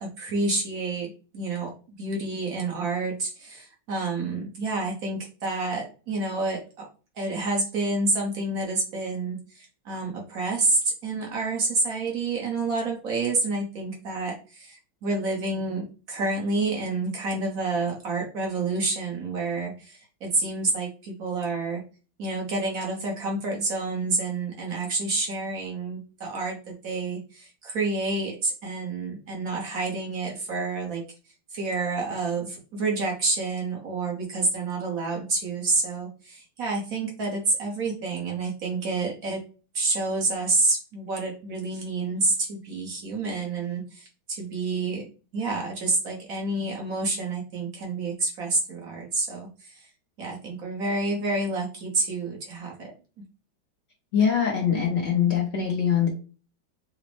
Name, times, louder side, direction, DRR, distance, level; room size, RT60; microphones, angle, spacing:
voice 1, 0.0-1.7 2.0-6.9 7.2-21.8 22.2-26.6 26.8-31.0 31.5-39.4 39.7-45.0 45.3-49.8 50.2-52.9, right 3 dB, 55° right, -1 dB, 1.1 m, -28 dB
voice 2, 54.1-56.1, left 8 dB, 65° left, -1 dB, 0.6 m, -23 dB
5.0 x 2.0 x 3.1 m, 0.36 s
omnidirectional pair, 2.1 m